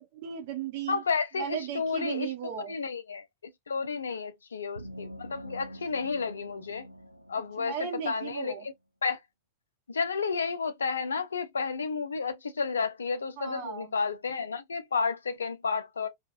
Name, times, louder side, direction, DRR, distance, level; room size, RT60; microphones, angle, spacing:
voice 1, 0.1-1.0 1.4-2.8 7.6-8.7 13.4-13.9, right 8 dB, 50° right, 0.8 m, -36 dB
voice 2, 0.9-2.3 2.7-6.9 7.3-8.7 9.0-9.2 9.9-16.1, left 5 dB, 70° left, 0.5 m, -31 dB
sound 1, 4.8-8.3, equal, 90° right, 0.3 m, -46 dB
2.9 x 2.4 x 2.4 m
figure-of-eight pair, 90°, 0 cm